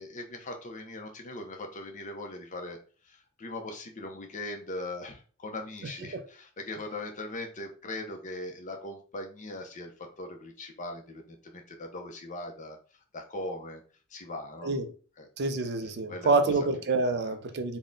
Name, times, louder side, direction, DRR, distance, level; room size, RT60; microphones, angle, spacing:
voice 1, 0.0-2.8 3.0-9.9 10.2-12.8 13.1-13.8 14.1-14.8 15.2-16.5 17.2-17.4, left 2 dB, 35° left, 0.7 m, -40 dB
voice 2, 15.4-17.8, right 3 dB, 50° right, 0.5 m, -27 dB
3.7 x 2.2 x 3.7 m
head